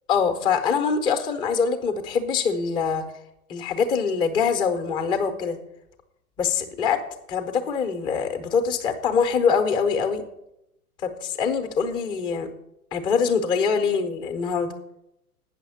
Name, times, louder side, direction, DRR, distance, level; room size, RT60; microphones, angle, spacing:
voice 1, 0.1-3.0 3.5-5.6 6.4-7.0 7.3-10.2 11.0-12.5 12.9-14.7, left 6 dB, 10° left, 8 dB, 0.5 m, -24 dB
9.0 x 6.4 x 6.8 m, 0.84 s
figure-of-eight pair, 110°, 46 cm